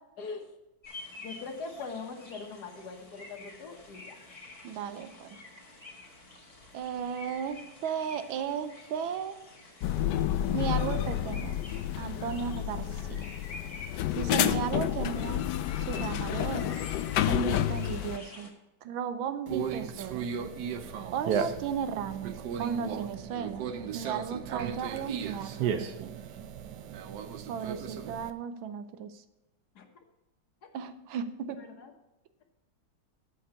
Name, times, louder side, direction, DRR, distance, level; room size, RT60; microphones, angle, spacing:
voice 1, 0.2-0.5 1.2-4.2 29.7-29.8 31.6-31.9, left 4 dB, 55° left, 4 dB, 1.6 m, -41 dB
sound 1, 0.8-18.5, left 2 dB, 20° left, 1.3 m, -49 dB
voice 2, 4.6-5.4 6.7-9.4 10.5-11.5 12.0-13.3 14.2-15.4 15.9-16.8 17.3-18.5 18.8-20.3 21.1-26.2 27.5-29.2 30.7-31.6, right 7 dB, 80° right, 11 dB, 1.5 m, -35 dB
sound 2, 9.8-18.2, left 12 dB, 75° left, 1.0 m, -30 dB
Conversation, 19.5-28.3, right 7 dB, 65° right, 1.2 m, -35 dB
8.3 x 5.7 x 6.8 m, 1.0 s
omnidirectional pair, 2.2 m